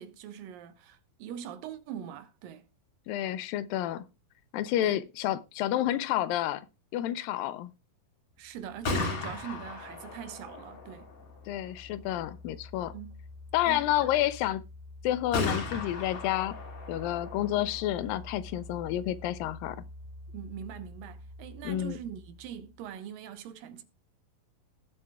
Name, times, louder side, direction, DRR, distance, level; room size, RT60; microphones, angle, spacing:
voice 1, 0.0-2.7 4.8-5.0 8.4-11.1 12.9-13.2 13.7-14.1 20.3-23.8, right 9 dB, 80° right, 2.8 m, -42 dB
voice 2, 3.1-4.1 4.5-6.6 6.9-7.7 11.5-12.9 13.5-14.6 15.0-16.6 16.9-19.8 21.6-22.0, left 13 dB, 85° left, 2.5 m, -30 dB
Gunshot gunfire, 8.6-22.4, left 3 dB, 50° left, 4.0 m, -39 dB
18.5 x 7.7 x 2.3 m
omnidirectional pair, 4.0 m